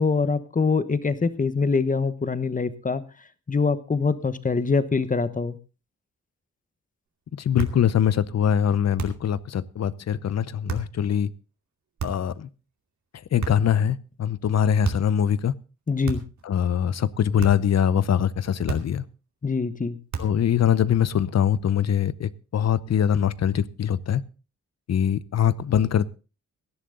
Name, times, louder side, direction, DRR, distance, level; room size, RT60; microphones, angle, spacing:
voice 1, 0.0-3.0 3.5-5.6 15.9-16.2 19.4-20.0, left 4 dB, 30° left, 14 dB, 1.1 m, -24 dB
voice 2, 7.4-11.3 12.0-12.5 13.3-15.5 16.4-19.0 20.2-24.2 24.9-26.1, left 9 dB, 60° left, 19 dB, 0.8 m, -23 dB
sound 1, 7.6-7.9 9.0-9.3 10.7-11.0 12.0-12.4 13.4-13.8 14.8-15.2 16.0-16.5 17.4-17.7 18.7-19.1 20.1-20.5, right 5 dB, 70° right, 2.6 m, -32 dB
17.5 x 11.5 x 3.9 m, 0.32 s
wide cardioid pair, 115°, 29 cm